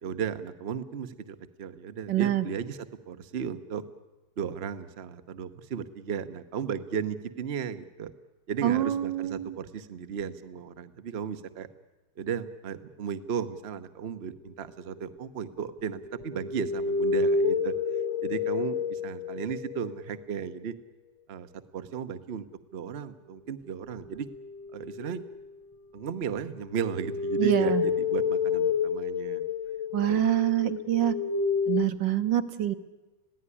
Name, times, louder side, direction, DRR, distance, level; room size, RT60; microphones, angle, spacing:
voice 1, 0.0-3.8 4.4-8.1 8.5-11.7 12.2-17.7 18.2-20.8 21.3-22.5 22.7-24.3 24.7-25.2 25.9-29.4 30.1-30.3, right 7 dB, 45° right, 11 dB, 0.8 m, -35 dB
voice 2, 2.1-2.5 8.6-9.5 27.4-27.8 29.9-31.2 31.7-32.7, right 12 dB, 60° right, 10 dB, 1.6 m, -26 dB
sound 1, 15.8-19.9 24.0-25.5 26.3-31.8, left 4 dB, 65° left, 1.5 m, -29 dB
21.0 x 16.0 x 9.9 m, 1.1 s
omnidirectional pair, 2.4 m